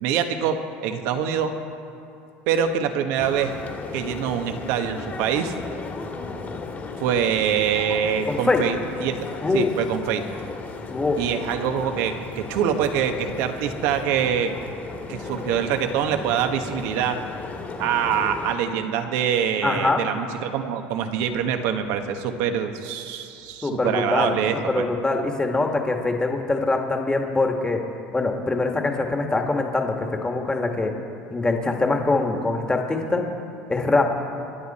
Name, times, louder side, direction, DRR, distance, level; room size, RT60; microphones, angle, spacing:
voice 1, 0.0-1.5 2.5-3.6 3.9-5.5 7.0-9.2 9.5-10.2 11.2-14.5 15.1-17.2 17.8-24.9, right 8 dB, 70° right, 6 dB, 1.4 m, -24 dB
sound 1, 3.2-18.6, left 4 dB, 30° left, 2.1 m, -35 dB
voice 2, 8.3-8.7 9.4-9.7 10.9-11.2 19.6-20.0 23.6-27.8 28.1-30.9 31.3-33.2 33.7-34.2, left 3 dB, 15° left, 3 dB, 1.8 m, -23 dB
27.0 x 9.6 x 4.3 m, 2.6 s
supercardioid pair, 105°, 5 cm